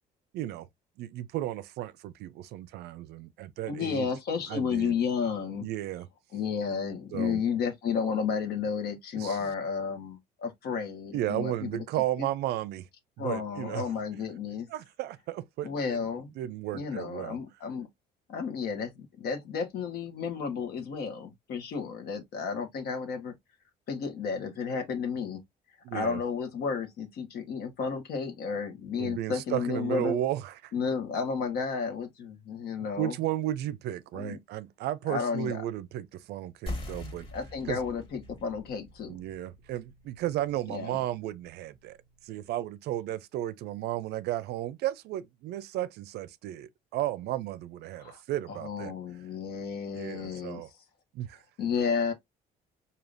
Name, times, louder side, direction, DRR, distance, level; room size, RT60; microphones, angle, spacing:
voice 1, 0.3-0.7 1.0-4.1 4.5-4.9 5.6-6.1 7.1-7.4 9.2-9.5 11.1-12.9 13.2-13.8 14.7-16.0 16.4-17.4 25.8-26.2 29.0-30.7 33.0-37.3 37.7-37.8 39.1-42.0 42.2-48.9 49.9-50.7 51.1-51.4, right 13 dB, 75° right, 0.4 m, -34 dB
voice 2, 3.7-5.7 6.3-11.8 12.2-12.3 13.2-14.7 15.6-16.3 16.7-17.9 18.3-23.3 23.9-25.4 25.9-30.2 30.7-33.1 34.1-34.4 35.1-35.6 37.3-39.2 40.7-41.0 48.0-48.2 48.5-50.6 51.6-52.1, left 6 dB, 70° left, 1.2 m, -32 dB
sound 1, 36.7-41.8, left 1 dB, 30° left, 1.6 m, -43 dB
4.9 x 2.7 x 2.5 m
cardioid pair, 110°, 17 cm